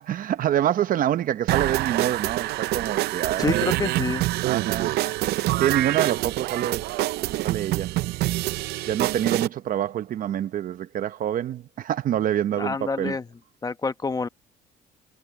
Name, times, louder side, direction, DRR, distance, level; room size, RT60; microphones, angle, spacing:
voice 1, 0.0-3.7 4.5-5.0 5.6-6.8 7.4-7.9 8.9-13.2, right 11 dB, 55° right, 0.9 m, -26 dB
sound 1, 1.5-9.5, right 17 dB, 75° right, 0.5 m, -26 dB
voice 2, 3.4-4.3 12.6-13.3 13.6-14.3, left 4 dB, 20° left, 1.1 m, -27 dB
cardioid pair, 110°, 17 cm